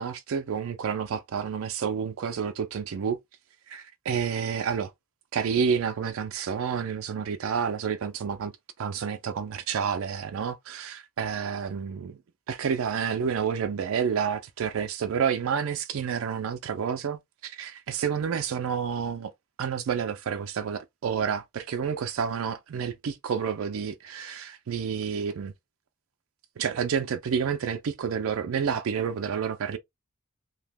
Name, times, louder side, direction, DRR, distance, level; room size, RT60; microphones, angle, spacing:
voice 1, 0.0-3.2 3.7-4.9 5.3-8.5 8.8-12.2 12.5-19.3 19.6-25.5 26.6-29.8, right 7 dB, 70° right, 0.4 m, -29 dB
2.8 x 2.1 x 3.4 m
head